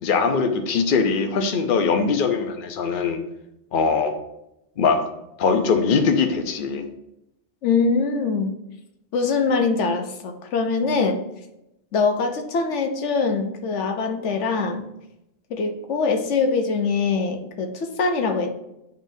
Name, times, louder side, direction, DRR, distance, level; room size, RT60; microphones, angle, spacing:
voice 1, 0.0-3.2 3.7-4.1 4.8-5.0 5.4-6.8, left 5 dB, 55° left, 6 dB, 0.8 m, -21 dB
voice 2, 7.6-8.5 9.1-11.2 11.9-14.8 15.5-18.5, left 4 dB, 85° left, 5 dB, 1.1 m, -23 dB
10.5 x 4.0 x 2.7 m, 0.86 s
omnidirectional pair, 1.2 m